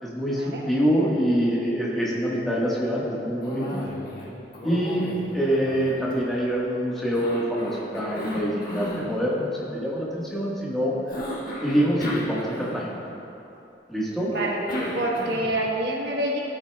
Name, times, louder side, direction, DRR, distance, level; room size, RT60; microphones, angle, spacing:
voice 1, 0.0-3.8 4.6-5.1 5.3-10.9 11.6-12.9 13.9-14.3, equal, ahead, -7 dB, 1.4 m, -25 dB
Cough, 3.4-4.3 4.5-6.6 7.1-9.1 11.1-13.1 14.3-15.6, equal, 55° left, 1.6 m, -34 dB
voice 2, 14.9-16.4, right 1 dB, 70° right, -2 dB, 1.2 m, -27 dB
13.5 x 8.6 x 2.3 m, 2.8 s
head